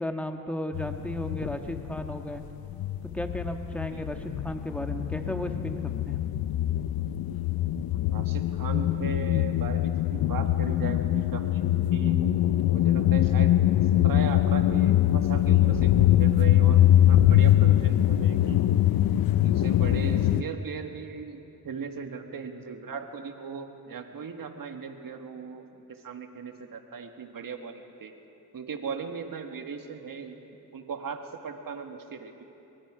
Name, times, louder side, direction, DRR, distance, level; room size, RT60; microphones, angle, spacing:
voice 1, 0.0-2.4 3.1-6.2, left 1 dB, 5° left, 5 dB, 1.6 m, -34 dB
sound 1, 0.7-2.4 2.6-20.4, left 12 dB, 90° left, 0.5 m, -23 dB
voice 2, 7.8-11.6 11.9-12.4 12.7-13.5 14.0-18.7 19.4-28.1 28.5-30.4 30.7-32.4, right 6 dB, 70° right, 5 dB, 1.7 m, -38 dB
23.0 x 22.5 x 5.0 m, 3.0 s
cardioid pair, 70°, 35 cm